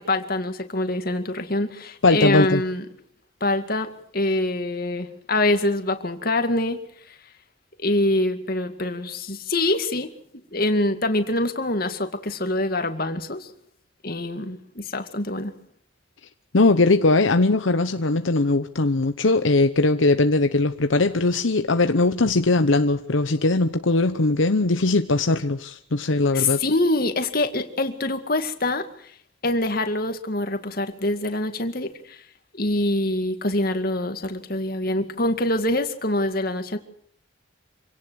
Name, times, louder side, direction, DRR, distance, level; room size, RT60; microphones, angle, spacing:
voice 1, 0.0-2.8 3.4-3.9 4.1-6.8 7.1-7.2 7.8-10.1 10.5-13.5 14.0-15.5 26.3-28.9 29.4-32.2 32.5-36.8, left 2 dB, 45° left, 2.2 m, -25 dB
voice 2, 2.0-2.6 16.5-26.6, left 2 dB, 75° left, 0.9 m, -20 dB
26.5 x 17.5 x 6.4 m
head